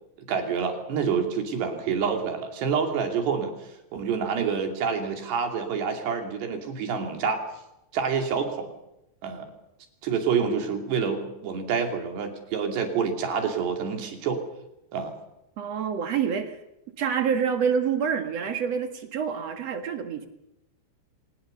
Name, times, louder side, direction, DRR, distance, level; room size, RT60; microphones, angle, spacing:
voice 1, 0.3-3.5 3.9-7.4 7.9-8.7 9.2-9.5 10.0-14.4 14.9-15.1, right 6 dB, 70° right, 4 dB, 4.9 m, -27 dB
voice 2, 15.6-16.6 17.0-20.3, right 7 dB, 50° right, 7 dB, 2.2 m, -27 dB
24.0 x 20.0 x 6.8 m, 0.86 s
omnidirectional pair, 5.0 m